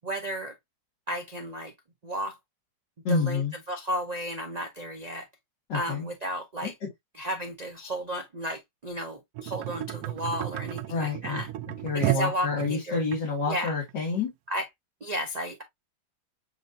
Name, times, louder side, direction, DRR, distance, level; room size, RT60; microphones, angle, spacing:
voice 1, 0.0-0.5 1.1-1.7 2.0-2.4 3.1-3.4 3.7-5.3 5.7-6.7 7.1-11.5 11.9-13.0 13.5-13.7 14.5-14.7 15.0-15.6, equal, 55° right, 0.4 m, -33 dB
voice 2, 3.0-3.5 5.7-6.1 6.6-6.7 10.9-11.4 11.8-14.3, left 4 dB, 75° left, 2.6 m, -28 dB
sound 1, 9.4-13.2 13.9-14.0, right 14 dB, 75° right, 1.1 m, -32 dB
7.7 x 2.6 x 2.5 m
omnidirectional pair, 2.0 m